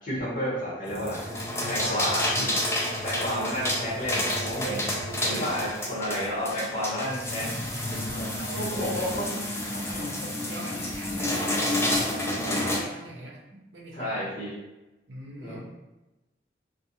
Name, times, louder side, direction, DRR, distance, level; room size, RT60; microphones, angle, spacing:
voice 1, 0.0-1.2 1.7-2.5 3.0-4.8 5.2-7.5 8.1-8.3 8.6-9.3 13.9-14.5 15.4-15.8, equal, 45° left, -8 dB, 1.1 m, -31 dB
sound 1, 0.9-12.8, left 1 dB, 15° left, 0.3 m, -29 dB
voice 2, 1.4-2.1 2.4-3.1 4.6-6.7 8.1-9.2 9.7-13.4 13.7-14.3 15.1-15.7, right 1 dB, 75° right, -1 dB, 0.6 m, -41 dB
2.5 x 2.3 x 2.8 m, 1.0 s
head